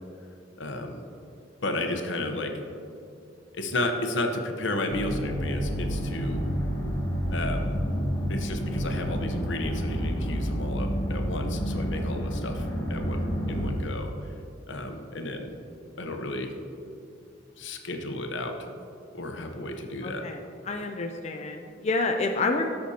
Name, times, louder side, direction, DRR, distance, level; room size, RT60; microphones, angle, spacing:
voice 1, 0.6-1.0 1.6-2.6 3.5-6.4 7.3-7.8 8.3-14.3 14.7-15.6 16.0-16.5 17.6-18.7 19.1-20.2, left 1 dB, 75° left, 4 dB, 0.9 m, -33 dB
sound 1, 4.9-13.7, equal, 20° left, 1.3 m, -29 dB
voice 2, 20.0-20.4 20.7-22.7, left 3 dB, 35° left, 3 dB, 0.4 m, -28 dB
13.0 x 5.9 x 2.8 m, 2.6 s
head